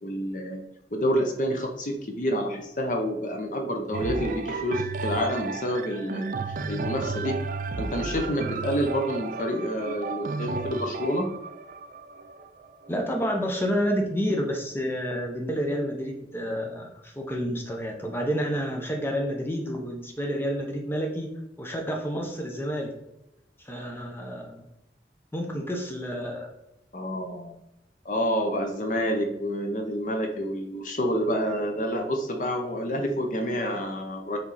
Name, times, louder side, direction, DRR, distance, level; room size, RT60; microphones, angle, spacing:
voice 1, 0.0-0.6 0.9-6.3 6.7-7.3 7.8-11.3 26.9-27.6 28.0-34.4, equal, 45° left, 3 dB, 0.9 m, -28 dB
sound 1, 3.9-13.7 14.4-14.5, right 4 dB, 50° right, 0.4 m, -33 dB
voice 2, 12.9-21.3 21.6-22.9 23.6-24.7 25.3-26.5, equal, 15° left, 1 dB, 0.8 m, -29 dB
7.2 x 3.5 x 4.1 m, 0.87 s
head